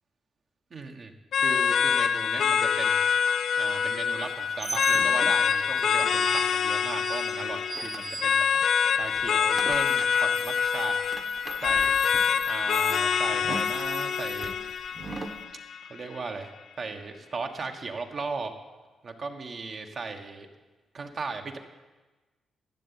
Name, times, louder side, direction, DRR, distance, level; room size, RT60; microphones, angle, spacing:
voice 1, 0.7-1.1 1.4-3.1 3.6-8.5 8.9-11.0 11.6-12.0 12.5-14.5 15.9-16.5 16.8-18.5 19.0-20.5 20.9-21.6, right 4 dB, 50° right, 4 dB, 1.4 m, -37 dB
sound 1, 1.3-16.3, left 7 dB, 70° left, 0.5 m, -26 dB
sound 2, 4.1-8.8 9.0-15.4, right 3 dB, 30° right, 1.3 m, -39 dB
12.0 x 7.1 x 8.8 m, 1.2 s
cardioid pair, 95°, 0 cm